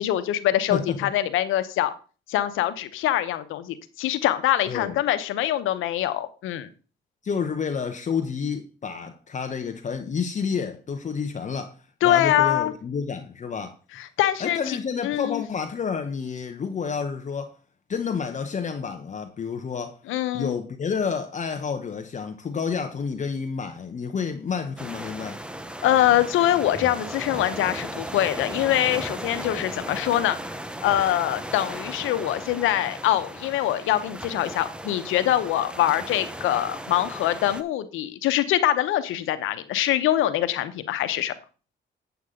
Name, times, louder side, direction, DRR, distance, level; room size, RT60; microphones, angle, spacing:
voice 1, 0.0-1.9 2.3-6.7 12.0-12.7 13.9-14.8 15.0-15.4 20.1-20.6 25.8-30.4 30.8-41.3, left 12 dB, 85° left, 0.8 m, -24 dB
voice 2, 0.7-1.1 4.7-5.0 7.2-13.8 14.4-17.5 17.9-20.0 20.3-25.4, left 6 dB, 40° left, 0.8 m, -29 dB
sound 1, 24.8-37.6, right 1 dB, 5° right, 0.7 m, -36 dB
8.1 x 7.8 x 3.7 m
cardioid pair, 90°, 20 cm